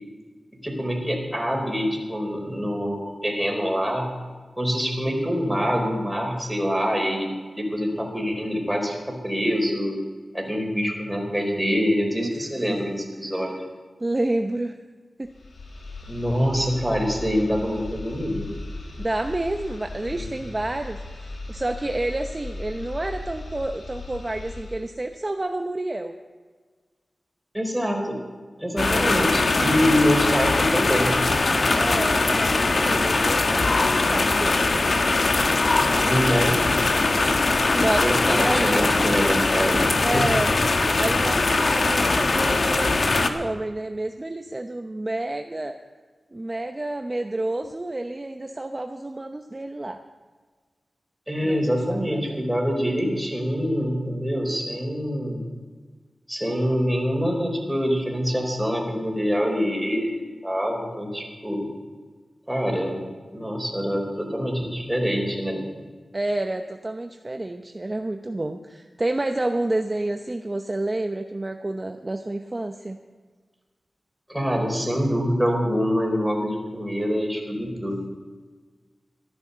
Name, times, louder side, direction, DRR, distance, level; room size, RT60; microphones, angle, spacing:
voice 1, 0.6-4.1 4.6-10.0 10.3-13.6 16.1-18.5 20.1-20.3 27.5-28.2 28.6-31.2 36.0-36.6 38.0-39.9 51.3-55.4 56.3-61.7 62.5-63.0 63.3-65.6 74.3-78.0, equal, 5° right, 1 dB, 4.4 m, -25 dB
voice 2, 12.1-12.9 14.0-14.8 15.2-15.3 19.0-26.1 29.0-29.1 31.7-34.7 37.7-39.0 40.0-40.6 41.0-45.7 46.3-50.0 51.4-52.2 66.1-73.0, right 2 dB, 35° right, 6 dB, 0.8 m, -29 dB
sound 1, 15.2-24.9, left 2 dB, 85° left, 2.0 m, -37 dB
sound 2, 28.8-43.3, left 3 dB, 65° left, 1.2 m, -21 dB
13.5 x 11.5 x 6.8 m, 1.5 s
cardioid pair, 55°, 0 cm